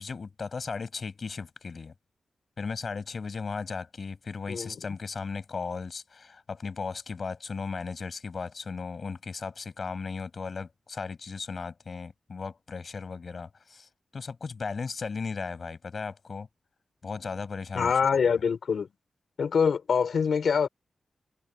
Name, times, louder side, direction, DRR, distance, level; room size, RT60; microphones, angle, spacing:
voice 1, 0.0-1.9 2.6-16.5 17.0-17.9, left 4 dB, 50° left, 6.0 m, -36 dB
voice 2, 17.7-18.9 19.4-20.7, left 6 dB, 75° left, 5.0 m, -24 dB
wide cardioid pair, 125°, 0 cm